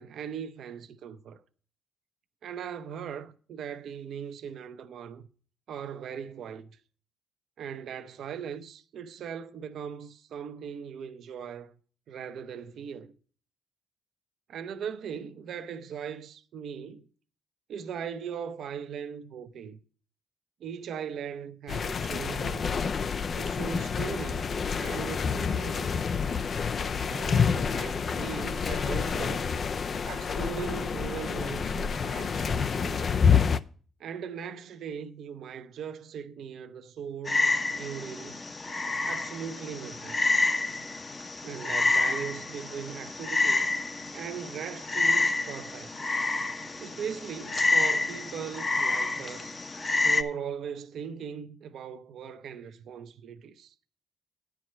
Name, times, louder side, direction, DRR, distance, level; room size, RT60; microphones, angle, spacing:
voice 1, 0.0-1.4 2.4-5.2 5.7-6.8 7.6-11.7 12.1-13.1 14.5-17.1 17.7-19.8 20.6-22.7 23.4-24.5 24.8-26.0 27.0-29.5 30.1-33.1 34.0-38.5 39.0-40.2 41.4-43.7 44.1-45.9 46.8-49.6 50.0-53.7, right 7 dB, 70° right, 0.7 m, -39 dB
sound 1, 21.7-33.6, left 6 dB, 45° left, 0.5 m, -28 dB
Frog, 37.3-50.2, left 2 dB, 30° left, 0.8 m, -28 dB
9.8 x 4.7 x 7.4 m
cardioid pair, 90°, 0 cm